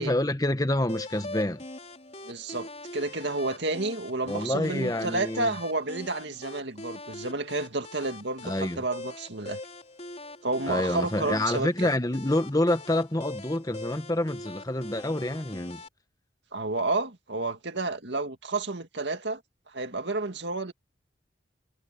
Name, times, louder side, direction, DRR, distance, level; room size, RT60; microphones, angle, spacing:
voice 1, 0.0-1.6 4.3-5.5 8.4-8.8 10.7-15.8, left 1 dB, 20° left, 1.2 m, -27 dB
sound 1, 0.9-15.9, left 2 dB, 35° left, 4.3 m, -43 dB
voice 2, 2.3-9.6 10.4-11.9 16.5-19.4 19.7-20.7, right 2 dB, 65° right, 2.2 m, -31 dB
head